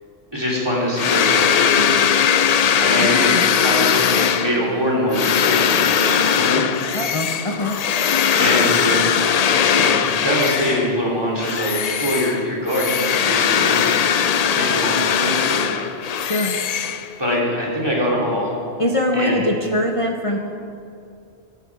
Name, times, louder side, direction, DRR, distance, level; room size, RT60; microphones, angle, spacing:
voice 1, 0.3-2.1 2.8-6.6 8.4-9.1 9.7-13.8 14.5-15.8 17.2-18.5 19.1-19.6, equal, 20° right, -3 dB, 2.8 m, -23 dB
sound 1, 1.0-11.0 11.4-17.4, left 8 dB, 60° left, 0.4 m, -19 dB
voice 2, 3.0-3.4 6.9-7.8 16.2-16.6 18.8-20.4, left 1 dB, 35° left, 2 dB, 0.8 m, -22 dB
13.0 x 11.5 x 4.7 m, 2.4 s
omnidirectional pair, 1.1 m